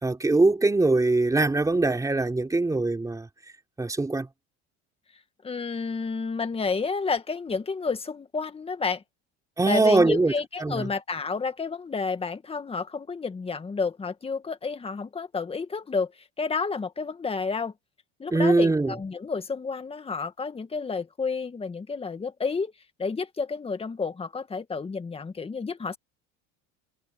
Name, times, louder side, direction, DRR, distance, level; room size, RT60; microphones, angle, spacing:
voice 1, 0.0-3.3 3.8-4.3 9.6-10.3 10.6-10.9 18.3-18.9, right 2 dB, 10° right, 3.7 m, -22 dB
voice 2, 5.4-9.0 9.7-17.7 18.2-22.7 23.0-26.0, left 4 dB, 20° left, 1.9 m, -30 dB
cardioid pair, 125°, 31 cm